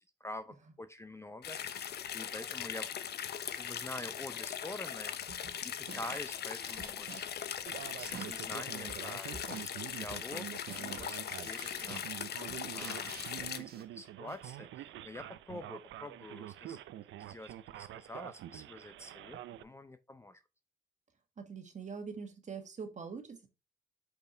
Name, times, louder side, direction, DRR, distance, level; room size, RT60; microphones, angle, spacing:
voice 1, 0.2-2.9 3.5-7.7 8.0-9.3 9.6-12.1 12.7-13.2 13.5-16.8 17.2-20.4, left 1 dB, 15° left, 11 dB, 0.5 m, -47 dB
sound 1, 1.4-13.6, left 9 dB, 55° left, 0.7 m, -40 dB
sound 2, 5.3-5.6 5.9-8.5 8.9-14.6, right 6 dB, 50° right, 1.3 m, -51 dB
Male speech man speaking, 7.7-19.6, right 12 dB, 75° right, 0.5 m, -46 dB
voice 2, 21.4-23.5, right 5 dB, 35° right, 6 dB, 1.7 m, -43 dB
5.3 x 4.6 x 4.4 m, 0.26 s
cardioid pair, 90°, 20 cm